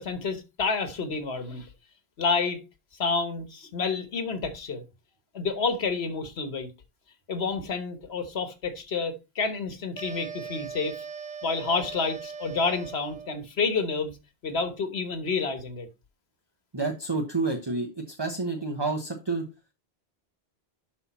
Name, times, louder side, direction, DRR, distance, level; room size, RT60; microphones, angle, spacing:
voice 1, 0.0-1.7 2.2-2.6 3.0-4.8 5.3-6.7 7.3-11.0 11.4-14.1 14.4-15.9, left 4 dB, 75° left, 1.5 m, -29 dB
sound 1, 10.0-13.4, right 6 dB, 50° right, 0.7 m, -40 dB
voice 2, 16.7-19.4, right 3 dB, 25° right, 1.1 m, -29 dB
11.5 x 4.1 x 4.2 m
omnidirectional pair, 1.1 m